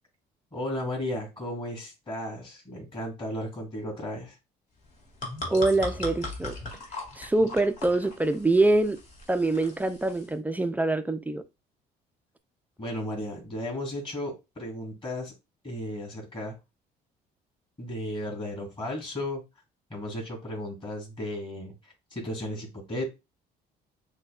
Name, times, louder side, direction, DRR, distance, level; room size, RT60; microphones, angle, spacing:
voice 1, 0.5-4.4 12.8-15.3 15.6-16.6 17.8-19.4 19.9-23.1, left 1 dB, 30° left, 2.6 m, -34 dB
Pouring beer, 4.8-10.3, left 2 dB, 50° left, 1.7 m, -39 dB
voice 2, 5.5-6.6 7.2-9.0 9.3-11.4, right 2 dB, 10° right, 0.3 m, -24 dB
6.4 x 2.2 x 2.3 m
cardioid pair, 110°, 17 cm